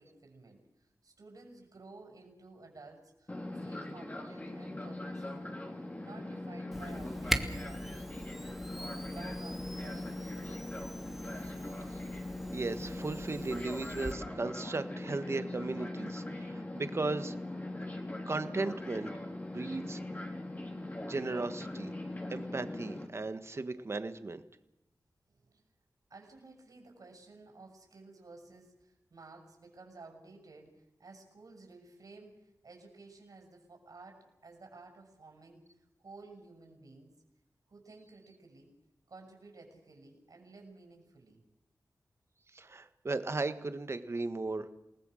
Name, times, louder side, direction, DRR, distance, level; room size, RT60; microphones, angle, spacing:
voice 1, 0.0-5.7 6.0-8.6 9.1-10.5 25.3-25.6 26.1-37.1 37.7-38.7 39.1-41.4, right 3 dB, 65° right, 2 dB, 6.7 m, -54 dB
Fixed-wing aircraft airplane, 3.3-23.1, left 1 dB, 25° left, 3.8 m, -41 dB
Camera, 6.7-14.1, equal, 5° right, 1.9 m, -41 dB
voice 2, 12.5-17.3 18.3-19.1 19.5-20.0 21.0-21.9 22.3-24.4 42.5-44.7, right 3 dB, 45° right, 10 dB, 1.6 m, -36 dB
28.5 x 19.5 x 6.6 m, 0.86 s
wide cardioid pair, 100°, 7 cm